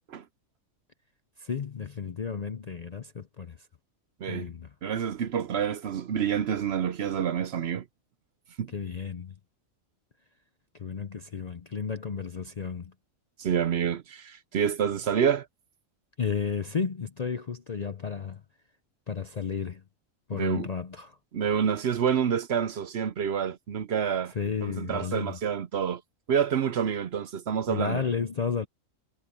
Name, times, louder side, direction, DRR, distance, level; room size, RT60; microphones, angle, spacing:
voice 1, 1.4-3.6 4.3-4.7 8.7-9.3 10.7-12.9 16.2-18.4 19.1-19.8 20.3-21.2 24.4-25.4 27.7-28.7, left 6 dB, 45° left, 0.5 m, -32 dB
voice 2, 4.8-7.9 8.6-8.7 13.4-15.5 20.3-20.7 21.3-26.0 26.3-28.0, right 8 dB, 60° right, 0.8 m, -28 dB
omnidirectional pair, 1.4 m